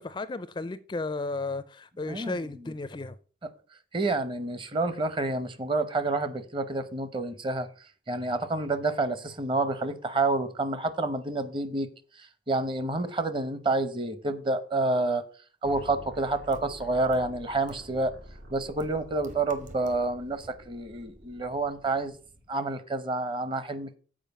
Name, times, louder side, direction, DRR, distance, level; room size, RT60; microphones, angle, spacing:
voice 1, 0.0-3.2, left 3 dB, 25° left, 0.4 m, -34 dB
voice 2, 2.1-2.4 3.9-7.7 8.1-11.9 12.2-15.2 15.6-18.1 18.5-22.2 22.5-24.0, right 2 dB, 30° right, 0.8 m, -29 dB
sound 1, 15.6-22.5, equal, 80° right, 2.3 m, -49 dB
sound 2, 16.5-16.6 17.1-17.2 17.7-17.8 18.8-18.9 19.2-20.0 20.4-20.5, right 1 dB, 45° right, 1.3 m, -45 dB
7.4 x 4.7 x 6.8 m
head